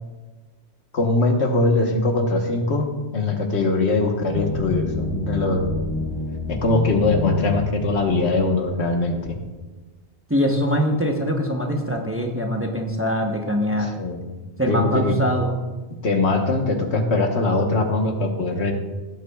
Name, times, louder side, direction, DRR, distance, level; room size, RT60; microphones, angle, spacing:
voice 1, 0.9-5.7 6.5-9.4 13.8-14.2 14.7-15.2 16.0-18.7, left 2 dB, 75° left, 3 dB, 1.4 m, -21 dB
sound 1, 4.3-8.8, left 4 dB, 35° left, 0.6 m, -29 dB
voice 2, 10.3-13.9 14.6-15.6, equal, 15° right, 2 dB, 0.8 m, -23 dB
16.5 x 8.3 x 2.3 m, 1.2 s
omnidirectional pair, 1.1 m